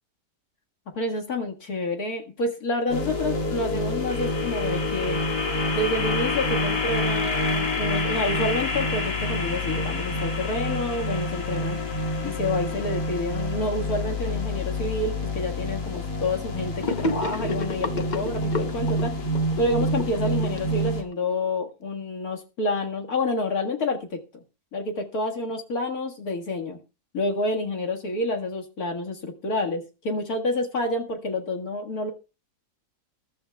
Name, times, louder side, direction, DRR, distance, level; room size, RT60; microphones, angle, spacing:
voice 1, 0.9-5.2 5.7-11.8 12.2-19.1 19.6-24.2 24.7-26.8 27.1-32.1, left 2 dB, 60° left, 2 dB, 2.3 m, -28 dB
sound 1, 2.9-21.0, left 2 dB, 90° left, 2.6 m, -27 dB
Gurgling / Sink (filling or washing), 16.8-21.3, left 3 dB, 35° left, 0.8 m, -31 dB
21.0 x 12.0 x 2.3 m, 0.31 s
omnidirectional pair, 1.8 m